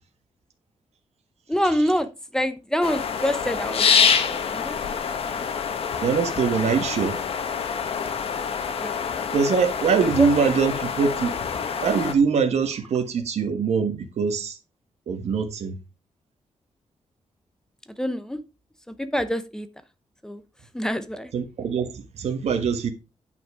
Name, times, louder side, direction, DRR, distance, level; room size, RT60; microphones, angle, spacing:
voice 1, 1.5-5.5 8.7-9.0 10.0-10.5 18.0-18.4 18.9-19.7 20.2-20.4 20.7-21.3, equal, 5° left, 0.8 m, -27 dB
sound 1, 2.8-12.1, left 6 dB, 60° left, 1.4 m, -26 dB
voice 2, 6.0-7.2 9.3-11.3 11.8-14.6 15.1-15.7 21.3-22.9, right 6 dB, 70° right, 1.6 m, -23 dB
9.1 x 5.9 x 4.9 m
wide cardioid pair, 160°, 11 cm